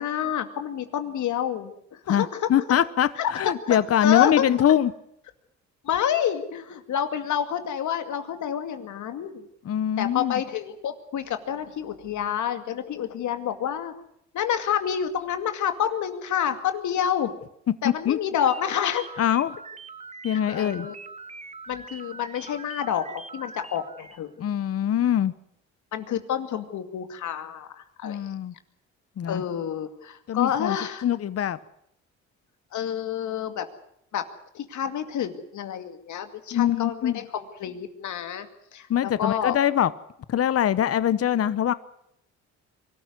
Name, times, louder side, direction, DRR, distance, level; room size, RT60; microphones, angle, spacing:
voice 1, 0.0-2.5 3.2-4.4 5.8-9.4 10.0-13.9 14.3-17.3 17.8-19.0 20.3-21.0 21.7-24.4 25.9-28.2 29.3-31.1 32.7-33.7 34.1-34.2 34.5-39.6, left 9 dB, 75° left, 8 dB, 2.3 m, -28 dB
voice 2, 2.1-3.1 3.4-4.9 9.6-10.4 17.8-18.2 19.2-19.6 20.2-20.9 24.4-25.3 28.0-28.5 29.2-29.4 30.3-30.8 31.0-31.6 36.5-37.2 38.9-39.9 40.3-41.7, left 10 dB, 50° left, 16 dB, 1.0 m, -23 dB
sound 1, 18.4-24.2, right 4 dB, 20° right, 1.2 m, -42 dB
23.5 x 13.5 x 9.5 m, 0.75 s
cardioid pair, 90°, 30 cm